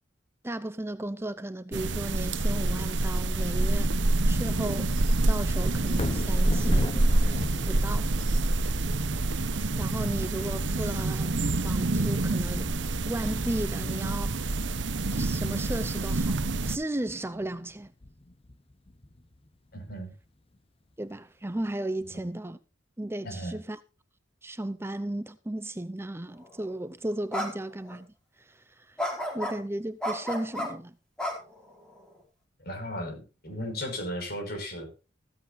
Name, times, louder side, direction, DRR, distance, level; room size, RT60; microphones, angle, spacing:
voice 1, 0.4-4.9 5.3-7.1 7.7-8.1 9.8-12.7 13.1-14.6 15.1-17.9 21.0-22.6 23.0-23.8 24.4-28.1 28.4-29.0 29.3-31.0, right 1 dB, 15° right, 0.6 m, -35 dB
sound 1, 1.7-16.8, right 2 dB, 70° right, 0.9 m, -27 dB
Thunder, 5.9-20.1 20.5-20.6, left 1 dB, 30° left, 0.8 m, -40 dB
voice 2, 19.7-20.1 22.1-22.2 23.2-23.6 32.6-34.9, equal, 55° left, 5.7 m, -36 dB
sound 2, 26.5-26.7 27.3-27.5 27.9-28.0 29.0-29.6 30.0-30.7 31.2-32.0, left 1 dB, 5° left, 4.9 m, -31 dB
15.0 x 14.5 x 2.7 m
head